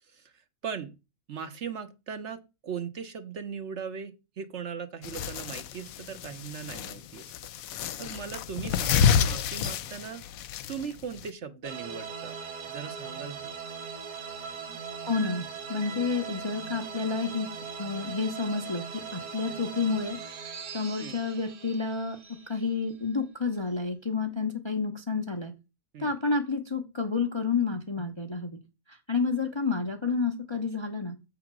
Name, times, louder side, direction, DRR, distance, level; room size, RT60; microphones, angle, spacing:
voice 1, 0.1-0.9 1.3-7.3 7.7-10.2 10.7-12.4 12.7-13.6 14.7-14.8 21.0-21.2 25.9-26.1, right 6 dB, 55° right, 9 dB, 1.1 m, -39 dB
sound 1, 5.0-11.3, left 7 dB, 75° left, 1.0 m, -29 dB
sound 2, 11.6-23.1, right 6 dB, 85° right, 1.5 m, -40 dB
voice 2, 15.1-15.4 15.7-17.5 17.8-18.8 19.1-20.2 20.7-22.2 22.5-25.5 26.0-28.6 29.1-31.1, left 4 dB, 30° left, 4 dB, 0.6 m, -29 dB
7.7 x 3.9 x 6.0 m, 0.28 s
omnidirectional pair, 1.5 m